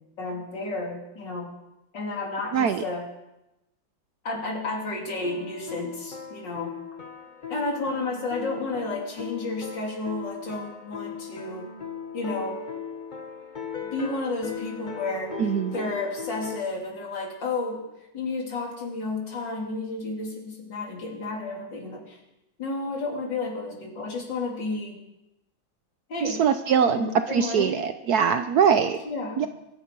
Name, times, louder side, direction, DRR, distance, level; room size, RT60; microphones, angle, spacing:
voice 1, 0.2-1.5 1.9-3.0 4.2-6.7 7.5-11.7 12.1-12.6 13.9-17.8 18.1-22.2 22.6-25.0 26.1-26.4 26.8-27.8 29.1-29.5, left 3 dB, 65° left, -1 dB, 3.8 m, -32 dB
voice 2, 2.5-2.8 15.4-15.8 26.2-29.0 29.4-29.5, right 7 dB, 65° right, 10 dB, 1.0 m, -22 dB
sound 1, 5.2-16.6, left 6 dB, 30° left, 1.0 m, -38 dB
23.5 x 9.9 x 4.7 m, 0.93 s
omnidirectional pair, 2.1 m